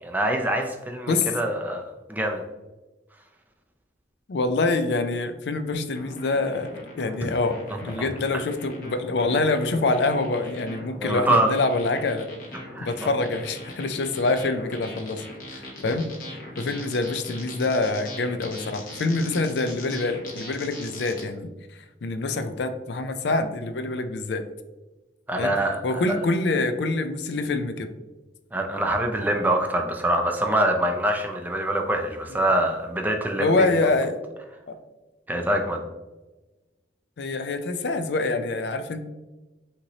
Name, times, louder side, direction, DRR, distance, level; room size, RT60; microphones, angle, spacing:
voice 1, 0.0-2.4 7.7-8.1 11.0-11.5 12.7-13.1 15.9-16.0 25.3-26.2 28.5-33.7 35.3-35.9, right 1 dB, 10° right, 3 dB, 0.4 m, -25 dB
voice 2, 4.3-12.3 12.8-15.2 15.5-16.0 16.6-24.4 25.4-25.5 25.8-27.9 33.4-34.2 34.7-34.8 37.2-39.0, left 3 dB, 70° left, 9 dB, 0.4 m, -25 dB
sound 1, 5.9-21.2, left 1 dB, 45° left, 1.1 m, -40 dB
5.7 x 3.0 x 2.7 m, 1.1 s
head